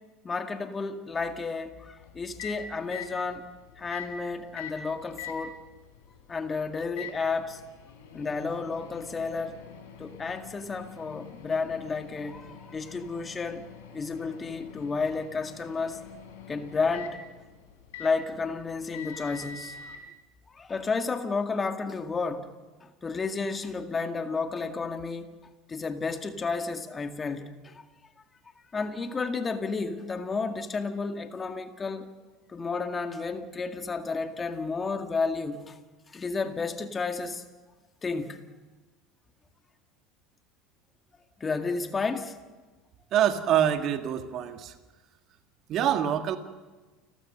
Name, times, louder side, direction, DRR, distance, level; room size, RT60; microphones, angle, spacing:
voice 1, 0.2-3.5 3.8-5.6 6.3-7.6 8.1-9.6 10.0-13.6 13.9-16.0 16.5-17.2 18.0-19.9 20.5-22.5 22.8-25.3 25.7-27.8 28.7-32.1 32.5-35.8 36.1-37.4 38.0-38.4 41.4-42.4, left 4 dB, 25° left, 2.0 m, -32 dB
Microwave oven, 2.0-20.0, left 6 dB, 65° left, 4.1 m, -45 dB
voice 2, 43.1-44.7 45.7-46.4, right 10 dB, 45° right, 1.8 m, -25 dB
30.0 x 14.5 x 6.6 m
figure-of-eight pair, 70°, 0 cm